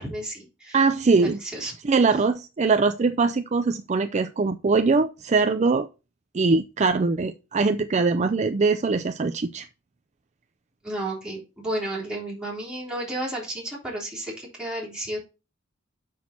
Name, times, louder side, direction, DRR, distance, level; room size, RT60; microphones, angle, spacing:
voice 1, 0.0-0.8 1.2-1.7 10.8-15.2, right 1 dB, 5° right, 3.6 m, -32 dB
voice 2, 0.7-5.9 6.3-9.7, right 4 dB, 35° right, 0.5 m, -22 dB
7.0 x 6.2 x 4.4 m
head